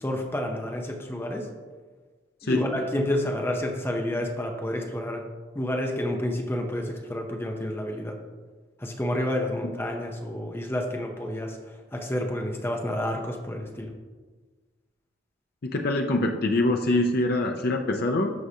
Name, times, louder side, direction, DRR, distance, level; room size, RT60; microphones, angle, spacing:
voice 1, 0.0-1.5 2.4-5.2 5.5-8.2 8.8-11.6 11.9-13.9, left 1 dB, 10° left, 2 dB, 0.6 m, -29 dB
voice 2, 15.6-18.3, left 2 dB, 55° left, 3 dB, 0.5 m, -24 dB
12.5 x 4.8 x 2.8 m, 1.4 s
head